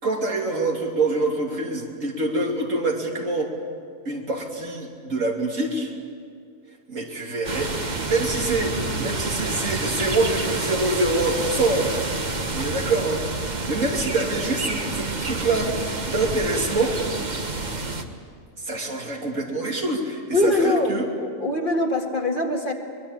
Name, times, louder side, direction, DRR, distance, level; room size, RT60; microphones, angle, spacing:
voice 1, 0.0-3.5 4.0-5.9 6.9-7.7 8.0-11.9 12.5-17.0 18.6-21.1, right 2 dB, 80° right, 1 dB, 3.4 m, -25 dB
sound 1, 7.4-18.0, right 3 dB, 35° right, 1.5 m, -28 dB
voice 2, 20.3-22.7, left 2 dB, 40° left, 3 dB, 2.3 m, -23 dB
24.0 x 22.0 x 8.7 m, 2.3 s
omnidirectional pair, 1.3 m